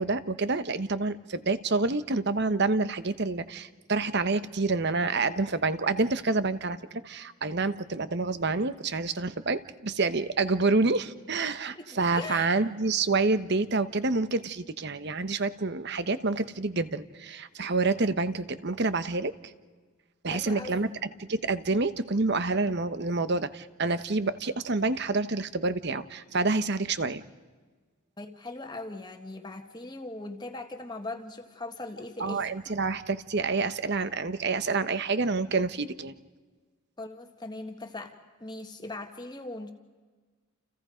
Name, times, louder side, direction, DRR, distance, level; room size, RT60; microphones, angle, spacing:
voice 1, 0.0-19.3 20.2-20.9 21.2-27.2 32.2-36.1, right 3 dB, 50° right, 12 dB, 1.0 m, -28 dB
voice 2, 11.7-12.6 20.3-20.9 28.2-32.5 37.0-39.7, left 2 dB, 20° left, 5 dB, 1.5 m, -40 dB
29.5 x 29.0 x 5.1 m, 1.4 s
head